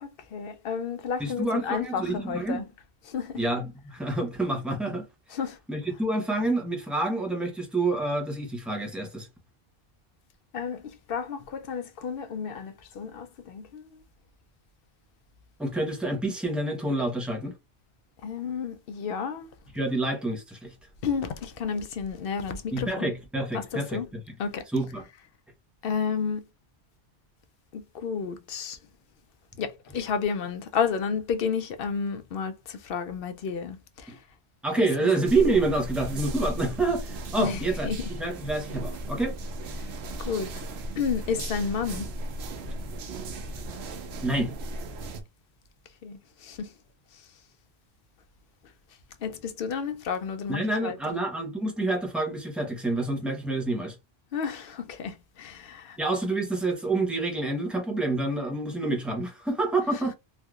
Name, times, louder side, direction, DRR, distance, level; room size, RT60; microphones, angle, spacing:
voice 1, 0.0-2.7 3.0-3.4 5.3-5.6 10.5-14.0 18.2-19.5 21.0-23.1 23.5-24.1 24.4-24.6 25.8-26.4 27.7-28.8 29.6-34.2 34.8-35.1 37.4-38.1 39.8-39.9 40.2-40.6 41.0-42.1 46.0-46.7 47.1-47.2 49.2-51.0 54.3-56.0, left 6 dB, 65° left, 0.8 m, -31 dB
voice 2, 1.2-2.7 3.4-5.1 5.7-9.3 15.6-17.5 19.7-20.7 22.7-24.0 24.7-25.0 34.6-37.9 38.2-39.4 44.2-44.5 50.5-54.0 56.0-60.1, right 2 dB, ahead, 0.8 m, -28 dB
sound 1, 35.2-45.2, right 1 dB, 90° right, 0.9 m, -36 dB
3.3 x 2.7 x 2.3 m
omnidirectional pair, 1.1 m